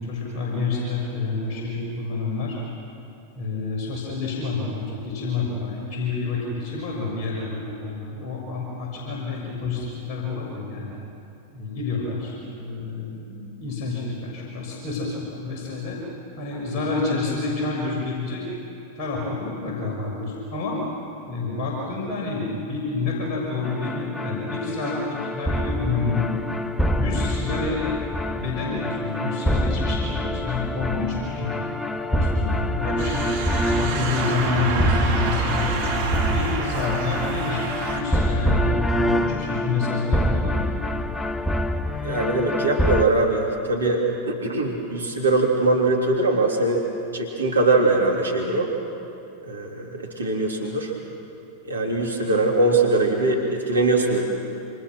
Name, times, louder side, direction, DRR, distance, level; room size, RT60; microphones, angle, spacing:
voice 1, 0.0-2.6 3.3-10.9 11.5-16.0 16.4-18.5 18.9-20.8 21.3-26.3 26.9-27.8 28.3-31.7 32.1-33.3 33.7-35.8 36.3-40.7, left 3 dB, 40° left, -3 dB, 6.4 m, -28 dB
sound 1, 23.6-43.0, left 1 dB, 10° left, 1.1 m, -26 dB
sound 2, 33.0-38.0, right 4 dB, 55° right, 3.4 m, -27 dB
voice 2, 42.0-46.9 47.1-48.7 49.5-50.9 51.6-54.2, right 2 dB, 75° right, 0 dB, 3.3 m, -22 dB
28.0 x 27.5 x 6.3 m, 2.7 s
figure-of-eight pair, 90°, 0 cm